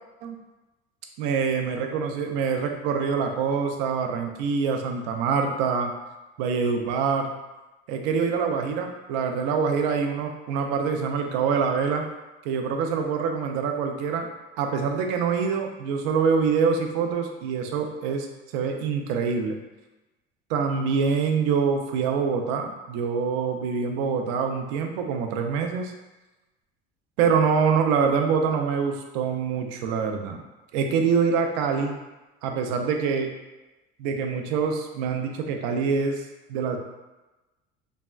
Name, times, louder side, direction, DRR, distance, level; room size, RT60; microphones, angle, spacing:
voice 1, 1.2-5.9 6.4-7.3 7.9-12.1 12.4-14.3 14.6-18.3 18.5-19.6 20.5-25.9 27.2-30.4 30.7-32.0 32.4-33.3 34.0-36.8, right 5 dB, 85° right, 4 dB, 0.4 m, -25 dB
3.3 x 2.1 x 2.2 m, 1.1 s
cardioid pair, 150°, 20 cm